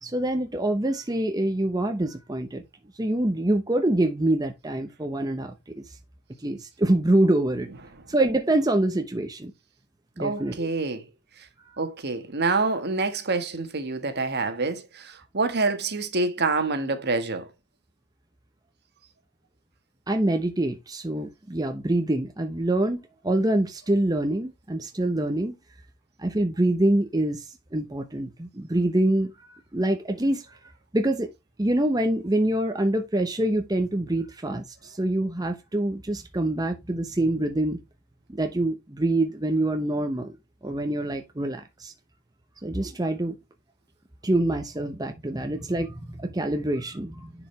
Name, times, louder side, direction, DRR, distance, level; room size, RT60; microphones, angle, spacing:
voice 1, 0.0-2.6 3.0-5.8 6.4-7.7 8.1-9.5 10.2-10.6 11.7-11.8 20.1-25.6 26.2-30.5 30.9-31.3 31.6-37.8 38.3-40.4 40.6-41.9 42.6-43.4 44.2-47.3, right 1 dB, 15° right, 0.8 m, -25 dB
voice 2, 10.2-11.0 11.8-17.5, right 3 dB, 50° right, 1.4 m, -27 dB
10.5 x 5.0 x 3.2 m
head